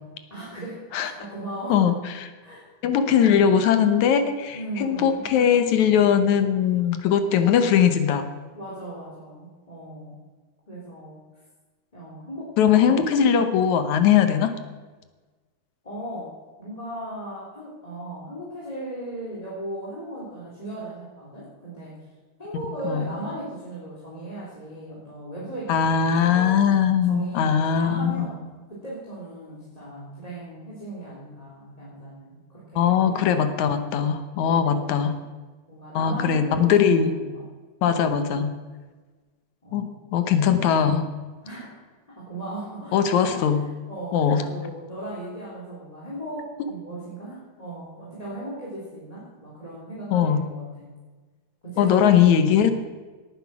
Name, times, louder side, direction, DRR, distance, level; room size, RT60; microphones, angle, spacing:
voice 1, 0.3-1.9 2.4-2.7 3.1-3.5 4.5-5.2 8.5-10.1 10.7-11.2 11.9-12.9 15.8-22.0 22.4-26.6 27.0-28.4 28.7-33.5 34.6-34.9 35.7-37.4 37.8-38.1 39.6-39.9 41.4-41.7 42.1-43.3 43.9-50.9 51.6-52.4, right 1 dB, 10° left, -7 dB, 3.4 m, -37 dB
voice 2, 1.7-2.3 2.8-8.3 12.6-14.5 22.8-23.0 25.7-28.3 32.8-35.2 35.9-37.1 37.8-38.5 39.7-41.1 42.9-43.6 44.1-44.5 50.1-50.4 51.8-52.7, left 8 dB, 70° left, 9 dB, 2.1 m, -20 dB
17.5 x 9.8 x 6.0 m, 1.3 s
omnidirectional pair, 3.7 m